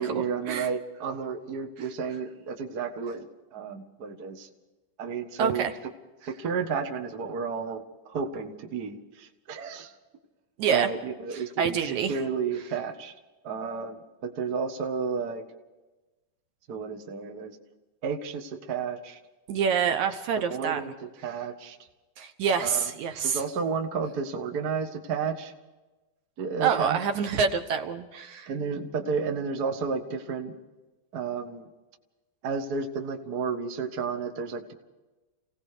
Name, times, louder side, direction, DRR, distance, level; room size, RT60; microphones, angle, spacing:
voice 1, 0.0-3.2 3.5-4.5 5.0-5.7 6.3-9.9 10.7-13.1 13.4-15.4 16.7-17.5 18.0-19.2 20.5-21.8 22.6-22.9 23.2-25.5 26.4-27.0 28.5-30.5 31.1-31.7 32.4-34.7, right 5 dB, 40° right, 4 dB, 1.6 m, -32 dB
voice 2, 5.4-5.7 10.6-10.9 11.3-12.1 19.5-20.8 22.2-23.4 26.6-28.5, right 6 dB, 70° right, 7 dB, 2.4 m, -27 dB
29.0 x 17.5 x 5.0 m, 1.1 s
omnidirectional pair, 3.7 m